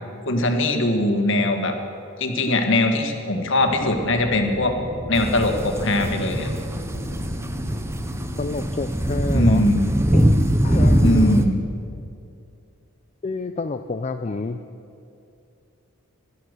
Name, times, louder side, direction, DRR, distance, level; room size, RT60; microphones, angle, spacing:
voice 1, 0.2-1.8 2.2-4.8 5.1-6.5 9.3-9.9 11.0-11.6, left 1 dB, 55° left, 5 dB, 1.5 m, -21 dB
sound 1, 3.6-8.6, equal, 75° right, 4.6 m, -35 dB
sound 2, 5.2-11.5, equal, 10° right, 0.7 m, -22 dB
voice 2, 8.4-9.7 10.1-10.3 10.6-11.4 13.2-14.6, left 3 dB, 30° left, 7 dB, 0.4 m, -29 dB
17.0 x 11.5 x 6.6 m, 2.6 s
head